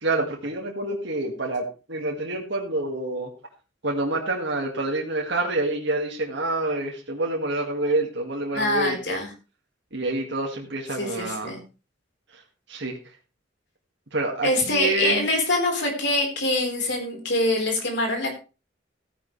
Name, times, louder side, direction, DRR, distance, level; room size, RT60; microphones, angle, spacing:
voice 1, 0.0-3.3 3.8-9.0 9.9-11.5 12.7-13.0 14.1-15.3, right 2 dB, 65° right, 0 dB, 2.2 m, -27 dB
voice 2, 8.5-9.3 11.0-11.6 14.4-18.3, left 1 dB, 65° left, 2 dB, 4.5 m, -24 dB
15.0 x 10.0 x 3.4 m, 0.32 s
head